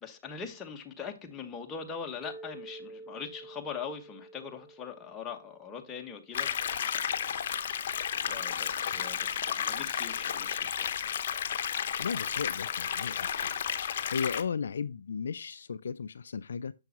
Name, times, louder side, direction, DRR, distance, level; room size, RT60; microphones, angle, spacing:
voice 1, 0.0-6.5 8.1-10.9, left 6 dB, 15° left, 1.2 m, -41 dB
Mallet percussion, 2.2-6.4, right 2 dB, 5° right, 0.6 m, -49 dB
sound 1, 6.3-14.4, left 8 dB, 55° left, 0.8 m, -32 dB
voice 2, 12.0-13.5 14.1-16.7, left 6 dB, 70° left, 0.4 m, -35 dB
7.0 x 5.9 x 2.9 m
hypercardioid pair, 140°, 0 cm